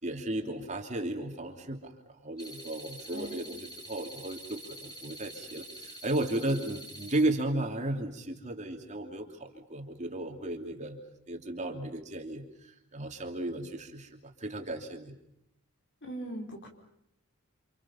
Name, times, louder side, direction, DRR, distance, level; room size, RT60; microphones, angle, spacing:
voice 1, 0.0-1.9 2.2-11.0 11.3-15.1, right 1 dB, 35° right, 3 dB, 2.9 m, -34 dB
sound 1, 2.4-7.2, right 1 dB, 15° left, 5.3 m, -46 dB
voice 2, 3.1-3.4 16.0-16.7, right 1 dB, 50° left, 3 dB, 5.0 m, -40 dB
30.0 x 27.0 x 5.8 m, 0.76 s
head